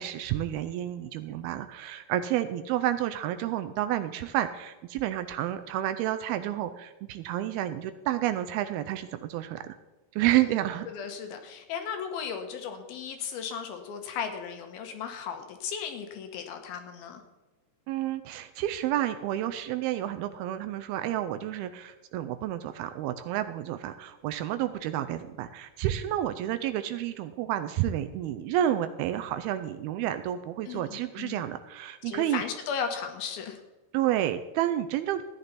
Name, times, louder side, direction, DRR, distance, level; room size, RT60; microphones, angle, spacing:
voice 1, 0.0-9.8 10.1-10.9 17.9-32.4 33.9-35.2, right 12 dB, 80° right, 10 dB, 2.3 m, -30 dB
voice 2, 10.9-17.2 30.7-30.8 31.2-31.4 32.1-33.6, left 7 dB, 75° left, 6 dB, 2.8 m, -36 dB
14.5 x 10.0 x 4.1 m, 1.1 s
omnidirectional pair, 4.7 m